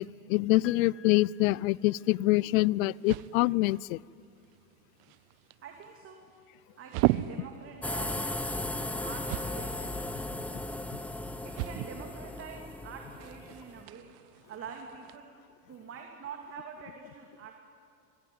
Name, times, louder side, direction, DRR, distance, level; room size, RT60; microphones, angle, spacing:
voice 1, 0.0-4.0, left 19 dB, 65° left, 25 dB, 0.6 m, -25 dB
Piano, 0.6-2.6 3.9-4.0, left 12 dB, 30° left, 1.0 m, -53 dB
sound 1, 1.8-15.2, right 18 dB, 50° right, 0.8 m, -38 dB
voice 2, 5.6-6.2 6.8-8.3 9.0-10.0 11.4-14.1 14.5-15.3 15.7-17.6, right 6 dB, 30° right, 2 dB, 3.0 m, -45 dB
sound 2, 7.8-13.8, left 1 dB, 5° left, 0.8 m, -36 dB
26.0 x 24.0 x 9.6 m, 2.5 s
supercardioid pair, 130°, 46 cm